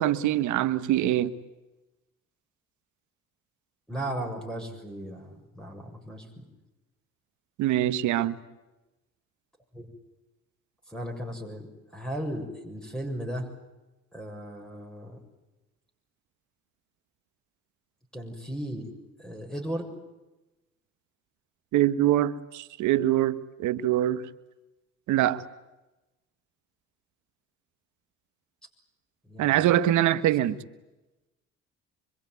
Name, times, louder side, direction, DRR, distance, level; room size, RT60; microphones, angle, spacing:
voice 1, 0.0-1.3 7.6-8.4 21.7-24.2 25.1-25.4 29.4-30.6, right 13 dB, 75° right, 1.4 m, -24 dB
voice 2, 3.9-6.5 9.7-9.9 10.9-11.7 11.9-13.5 14.1-15.2 18.1-18.9 19.2-19.9 29.3-29.7, right 1 dB, ahead, 7.2 m, -36 dB
25.5 x 24.5 x 9.5 m
supercardioid pair, 80°, 30 cm